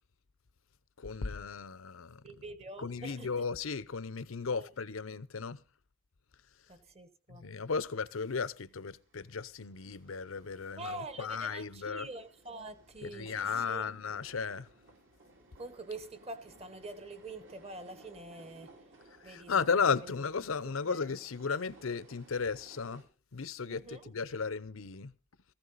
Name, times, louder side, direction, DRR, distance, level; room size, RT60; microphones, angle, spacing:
voice 1, 1.0-2.2 2.8-5.6 7.3-12.1 13.0-14.7 19.2-23.0 23.3-25.1, left 5 dB, 85° left, 0.8 m, -35 dB
voice 2, 2.2-3.3 4.5-4.7 6.7-7.5 10.8-13.9 15.6-18.7 19.2-19.6 19.9-20.1 20.9-21.0 23.7-24.1, right 2 dB, 30° right, 1.2 m, -45 dB
sound 1, 8.7-23.0, right 2 dB, 65° right, 3.3 m, -59 dB
15.0 x 14.5 x 4.1 m
head